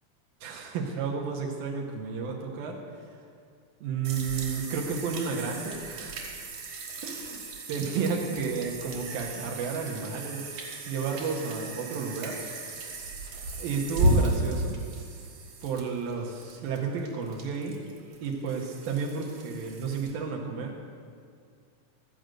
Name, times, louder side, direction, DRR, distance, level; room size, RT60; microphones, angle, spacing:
voice 1, 0.4-3.1 3.8-6.3 7.0-10.4 10.9-12.4 13.6-14.8 15.6-17.8 18.2-20.8, right 5 dB, 85° right, -1 dB, 2.7 m, -32 dB
sound 1, 4.0-20.1, right 1 dB, 65° right, 2.9 m, -34 dB
13.5 x 5.2 x 7.6 m, 2.3 s
omnidirectional pair, 4.0 m